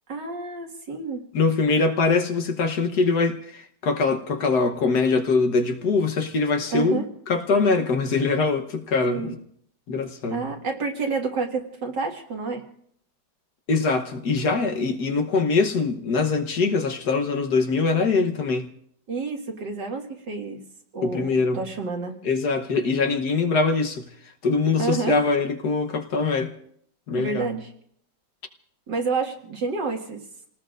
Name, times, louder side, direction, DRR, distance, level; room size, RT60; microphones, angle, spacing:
voice 1, 0.1-1.2 6.7-7.1 9.1-9.3 10.3-12.6 19.1-20.6 20.9-22.2 24.8-25.2 27.1-27.7 28.9-30.2, right 4 dB, 80° right, 2.6 m, -29 dB
voice 2, 1.3-9.4 9.9-10.5 13.7-18.7 21.0-21.6 22.2-26.5 27.1-27.5, left 4 dB, 70° left, 1.7 m, -23 dB
29.5 x 18.5 x 2.6 m
omnidirectional pair, 1.9 m